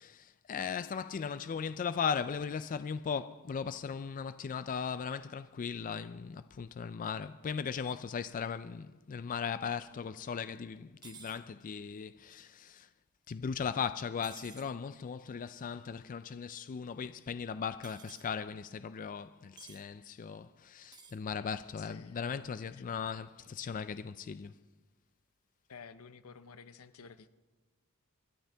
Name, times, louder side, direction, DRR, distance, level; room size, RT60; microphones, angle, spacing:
voice 1, 0.0-12.9 13.3-24.6, left 6 dB, 40° left, 0.3 m, -38 dB
sound 1, 11.0-11.4 14.2-14.7 17.8-18.3 19.6-19.8 20.8-21.2, right 5 dB, 20° right, 0.9 m, -52 dB
voice 2, 21.8-22.2 25.7-27.3, left 5 dB, 75° left, 0.7 m, -52 dB
25.5 x 11.5 x 3.4 m
head